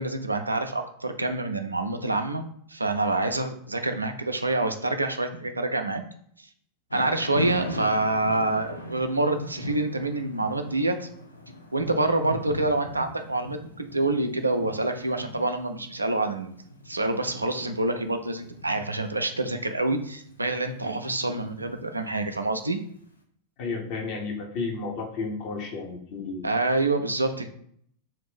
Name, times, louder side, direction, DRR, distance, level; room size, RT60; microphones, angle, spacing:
voice 1, 0.0-6.0 6.9-11.1 11.7-16.5 16.9-22.8 26.4-27.5, right 2 dB, 80° right, 6 dB, 0.3 m, -27 dB
Thunder / Rain, 6.9-22.9, equal, 80° left, 0.4 m, -40 dB
voice 2, 23.6-26.5, left 4 dB, 45° left, 1 dB, 0.8 m, -32 dB
2.5 x 2.4 x 3.5 m, 0.64 s
figure-of-eight pair, 90°, 0 cm